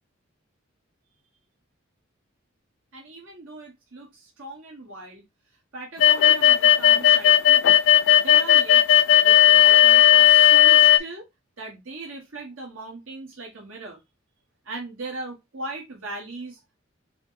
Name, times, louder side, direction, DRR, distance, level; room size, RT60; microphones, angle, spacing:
voice 1, 2.9-5.2 5.7-7.7 8.2-11.3 11.6-14.0 14.6-16.8, right 2 dB, 80° right, 1.2 m, -39 dB
sound 1, 6.0-11.0, left 12 dB, 65° left, 0.3 m, -15 dB
4.8 x 2.1 x 3.9 m
head